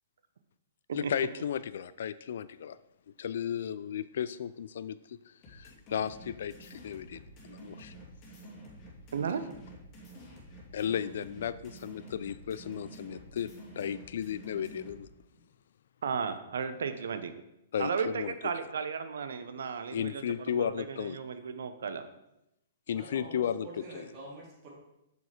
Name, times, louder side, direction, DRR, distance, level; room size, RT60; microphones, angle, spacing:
voice 1, 0.9-2.8 3.2-5.2 5.5-7.2 7.5-7.9 10.7-15.1 17.7-18.3 19.9-21.2 22.9-24.1, left 8 dB, 65° left, 15 dB, 0.3 m, -34 dB
sound 1, 5.4-15.0, right 1 dB, 30° left, 2.8 m, -49 dB
voice 2, 9.1-9.4 16.0-17.3 17.8-22.0, right 6 dB, 70° right, 10 dB, 0.8 m, -34 dB
voice 3, 22.9-24.7, right 2 dB, 40° right, -4 dB, 3.0 m, -46 dB
6.8 x 6.4 x 5.0 m, 0.87 s
hypercardioid pair, 120°, 0 cm